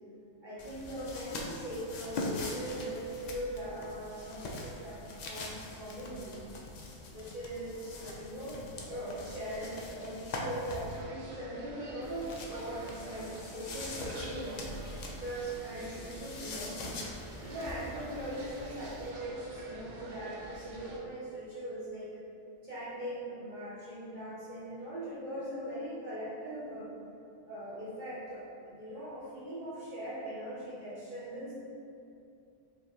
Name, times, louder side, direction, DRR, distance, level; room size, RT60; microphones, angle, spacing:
voice 1, 0.4-6.4 7.0-8.6 8.9-17.0 17.4-22.2 22.6-26.9 27.4-31.6, right 1 dB, 45° right, -10 dB, 0.9 m, -40 dB
sound 1, 0.6-11.0 12.0-19.1, left 2 dB, 85° left, 0.3 m, -43 dB
sound 2, 10.9-21.0, right 1 dB, 85° right, 0.3 m, -47 dB
4.6 x 2.7 x 3.0 m, 2.6 s
omnidirectional pair, 1.3 m